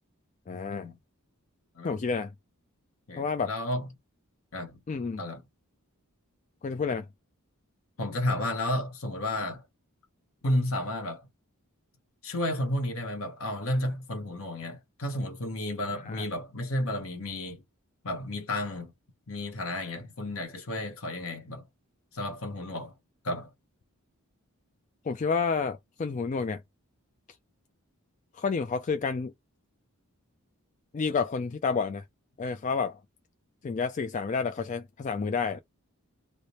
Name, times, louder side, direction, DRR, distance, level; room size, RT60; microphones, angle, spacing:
voice 1, 0.5-0.9 1.8-2.3 3.2-3.5 4.9-5.2 6.6-7.1 16.1-16.3 25.0-26.6 28.3-29.3 30.9-32.0 32.4-33.0 33.6-35.6, left 5 dB, 35° left, 0.3 m, -30 dB
voice 2, 3.1-3.9 4.5-4.8 5.2-5.4 8.0-9.6 10.4-11.3 12.2-17.6 18.0-18.9 19.3-21.7 22.1-22.9 23.2-23.5, left 1 dB, 65° left, 1.0 m, -32 dB
3.3 x 2.1 x 4.1 m
head